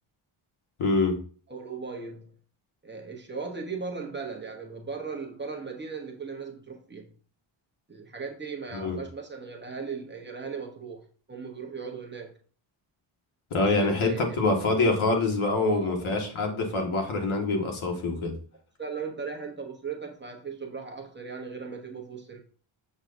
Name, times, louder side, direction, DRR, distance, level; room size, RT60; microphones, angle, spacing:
voice 1, 0.8-1.2 8.7-9.0 13.5-18.3, left 3 dB, 70° left, 1.7 m, -25 dB
voice 2, 1.5-2.3 2.8-7.1 7.9-12.3 13.6-14.4 15.6-16.3 18.8-22.4, right 5 dB, 20° right, 0.9 m, -38 dB
7.3 x 6.3 x 2.6 m
wide cardioid pair, 175°, 50 cm